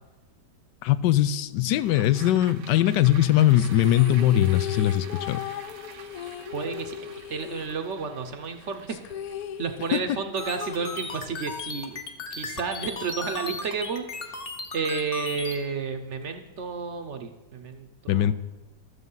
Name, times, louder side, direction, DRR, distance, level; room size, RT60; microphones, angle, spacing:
voice 1, 0.8-5.4 9.9-10.0 18.1-18.3, left 12 dB, 90° left, 15 dB, 1.2 m, -21 dB
sound 1, 1.9-12.4 12.7-12.8, right 9 dB, 80° right, 1.4 m, -48 dB
sound 2, 3.6-8.2 8.5-8.6 8.9-11.5, left 9 dB, 70° left, 1.0 m, -37 dB
voice 2, 6.5-7.0 7.3-9.0 9.6-12.0 12.3-14.4 14.7-18.3, right 5 dB, 50° right, 7 dB, 1.0 m, -31 dB
sound 3, 10.4-15.6, left 4 dB, 40° left, 1.1 m, -36 dB
13.0 x 7.4 x 5.5 m, 1.2 s
omnidirectional pair, 1.9 m